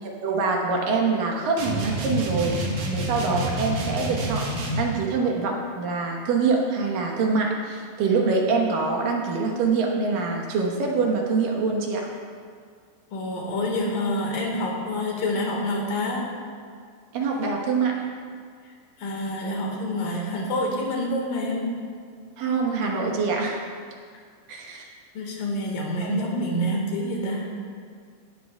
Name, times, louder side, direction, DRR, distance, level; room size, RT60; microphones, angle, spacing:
voice 1, 0.0-4.5 4.8-12.1 17.1-18.0 22.4-23.6 24.5-24.9 26.0-26.2, right 4 dB, 85° right, 0 dB, 3.0 m, -25 dB
sound 1, 1.6-5.0, right 1 dB, 65° right, 2.9 m, -28 dB
voice 2, 13.1-16.3 19.0-21.7 25.2-27.5, left 1 dB, 85° left, -1 dB, 3.6 m, -27 dB
17.0 x 12.5 x 2.4 m, 2.1 s
omnidirectional pair, 3.8 m